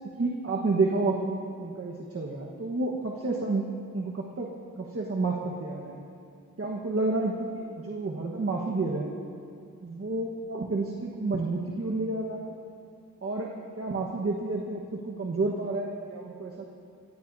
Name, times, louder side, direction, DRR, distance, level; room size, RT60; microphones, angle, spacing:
voice 1, 0.2-3.6 3.9-4.5 4.8-6.0 6.6-9.1 9.8-12.6 13.2-16.6, right 3 dB, 45° right, -1 dB, 1.4 m, -30 dB
23.5 x 17.0 x 2.8 m, 2.4 s
wide cardioid pair, 90°, 33 cm